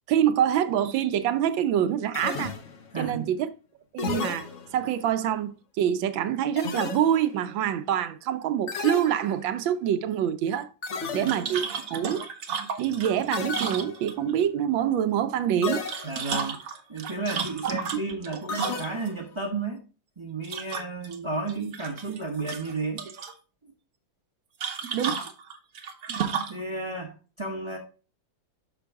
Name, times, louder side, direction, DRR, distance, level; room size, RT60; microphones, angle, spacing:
voice 1, 0.1-2.5 3.0-3.5 3.9-4.5 4.7-10.7 11.1-11.6 11.9-12.3 12.8-15.8 17.4-17.8 24.9-25.1, right 10 dB, 80° right, 1.3 m, -25 dB
sound 1, 2.1-3.0 4.0-5.0 6.6-7.4 8.7-9.7 10.8-11.7 13.3-14.2 15.6-16.4 18.5-19.3, left 5 dB, 60° left, 0.7 m, -34 dB
voice 2, 2.9-3.3 10.9-11.4 16.0-16.6 16.9-19.8 20.2-23.1 26.5-27.8, right 3 dB, 25° right, 0.6 m, -33 dB
sound 2, 11.3-14.4 15.7-19.1 20.4-21.2 21.5-22.2 22.5-23.3 24.6-26.6, right 6 dB, 55° right, 1.0 m, -33 dB
6.0 x 6.0 x 3.4 m
omnidirectional pair, 2.1 m